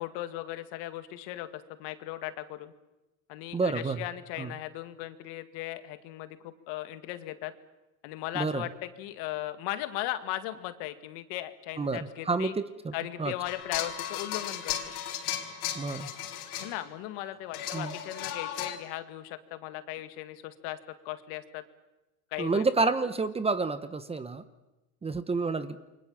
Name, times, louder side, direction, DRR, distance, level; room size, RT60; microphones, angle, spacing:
voice 1, 0.0-2.7 3.3-7.5 8.0-12.5 12.9-15.0 16.6-20.8 21.1-21.6 22.3-22.9, left 14 dB, 65° left, 10 dB, 2.2 m, -37 dB
voice 2, 3.5-4.1 4.4-4.5 8.3-8.7 11.8-12.9 13.2-13.3 15.7-16.1 17.7-17.9 22.4-24.4 25.0-25.8, right 4 dB, 15° right, 12 dB, 1.0 m, -29 dB
sound 1, 13.5-16.9 17.5-18.8, left 10 dB, 85° left, 4.8 m, -35 dB
29.0 x 24.0 x 7.4 m, 1.0 s
supercardioid pair, 130°, 44 cm